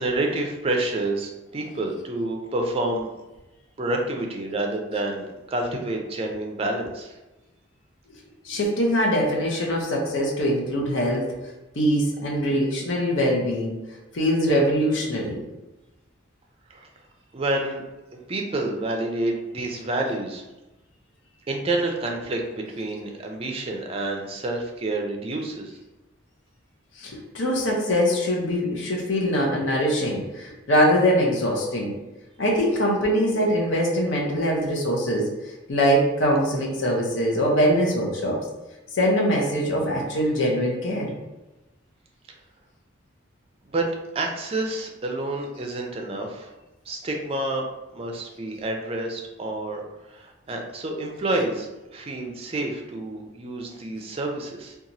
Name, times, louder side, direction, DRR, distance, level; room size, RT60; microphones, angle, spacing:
voice 1, 0.0-3.1 3.8-7.2 16.7-16.9 17.3-17.8 18.3-20.4 21.5-25.8 43.7-46.5 46.9-47.6 47.9-49.8 50.1-54.8, right 2 dB, 30° right, 1 dB, 0.4 m, -28 dB
voice 2, 8.4-11.3 11.8-13.8 14.1-15.4 27.0-31.9 32.4-35.3 35.7-38.5 38.9-41.1, equal, 70° left, -1 dB, 0.7 m, -23 dB
2.9 x 2.3 x 2.6 m, 1.0 s
head